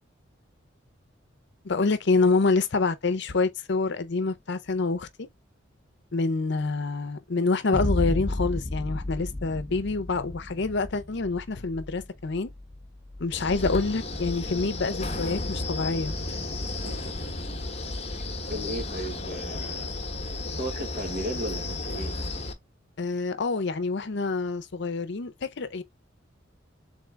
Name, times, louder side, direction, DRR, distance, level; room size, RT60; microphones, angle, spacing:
voice 1, 1.6-5.3 6.1-12.5 13.2-16.1 23.0-25.8, left 3 dB, 65° left, 0.7 m, -27 dB
Boom, 7.7-15.6, left 1 dB, 20° left, 0.7 m, -34 dB
Wind, 13.3-22.5, left 2 dB, 35° left, 1.0 m, -33 dB
voice 2, 16.8-17.1 18.5-19.9 20.6-22.1, right 1 dB, 50° right, 1.2 m, -35 dB
3.8 x 3.7 x 3.3 m
head